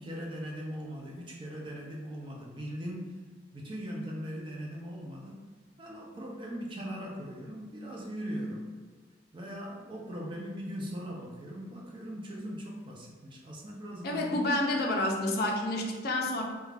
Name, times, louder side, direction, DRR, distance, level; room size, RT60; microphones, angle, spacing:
voice 1, 0.0-3.1 3.5-5.4 5.8-8.7 9.3-14.4, equal, 25° right, -1 dB, 0.4 m, -39 dB
voice 2, 14.0-16.4, left 1 dB, 50° left, 0 dB, 0.4 m, -29 dB
2.4 x 2.2 x 3.2 m, 1.5 s
head